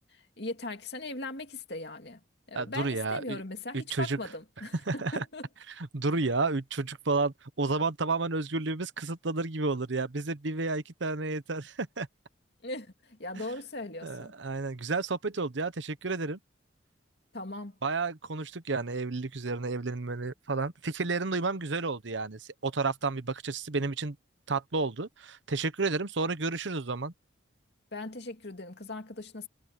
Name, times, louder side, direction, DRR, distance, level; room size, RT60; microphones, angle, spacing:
voice 1, 0.1-2.2 2.5-5.5 12.6-14.3 17.3-17.8 27.9-29.5, left 2 dB, 55° left, 2.7 m, -39 dB
voice 2, 2.5-3.4 3.7-4.2 4.9-5.2 5.8-12.1 13.4-13.5 14.0-16.4 17.8-24.2 24.5-27.1, right 3 dB, 70° right, 1.0 m, -31 dB
head